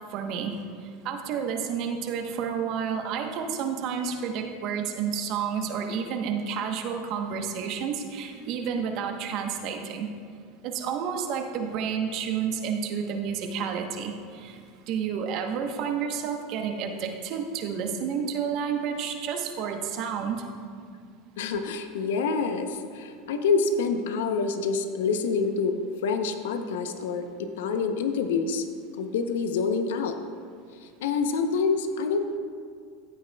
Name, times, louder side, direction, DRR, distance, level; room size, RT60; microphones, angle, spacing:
voice 1, 0.1-0.6 1.0-10.1 10.6-14.6 14.9-20.4, right 7 dB, 55° right, 4 dB, 1.0 m, -30 dB
voice 2, 21.4-28.7 29.0-30.2 30.8-32.4, left 5 dB, 80° left, 7 dB, 0.7 m, -27 dB
14.5 x 8.5 x 2.3 m, 2.1 s
hypercardioid pair, 105°, 0 cm